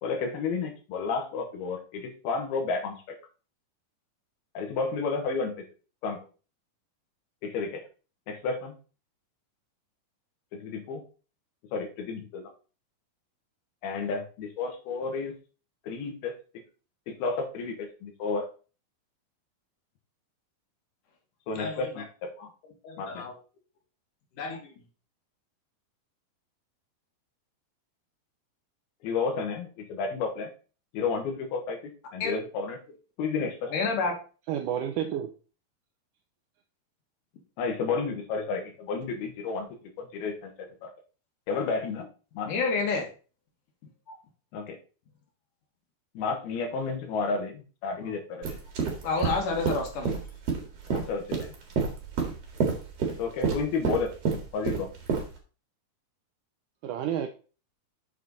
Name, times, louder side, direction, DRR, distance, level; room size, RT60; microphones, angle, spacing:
voice 1, 0.0-3.0 4.5-5.6 6.0-6.2 7.4-7.8 8.3-8.7 10.5-11.0 11.7-12.5 13.8-15.3 15.8-16.3 17.1-18.5 21.5-22.5 23.0-23.3 29.0-30.5 30.9-32.8 33.2-33.7 37.6-39.7 40.0-40.9 41.5-42.1 42.4-42.5 44.5-44.8 46.1-48.6 50.9-51.3 53.2-54.1 54.5-54.9, left 4 dB, 85° left, 3.2 m, -31 dB
voice 2, 21.6-21.9 22.8-23.3 24.4-24.7 32.2-32.3 33.4-34.1 42.5-43.1 44.1-44.2 49.0-50.2, left 4 dB, 65° left, 2.8 m, -29 dB
voice 3, 34.5-35.3 56.8-57.3, right 10 dB, 80° right, 1.8 m, -30 dB
sound 1, 48.4-55.3, right 5 dB, 50° right, 2.5 m, -29 dB
7.5 x 6.4 x 4.0 m
omnidirectional pair, 4.3 m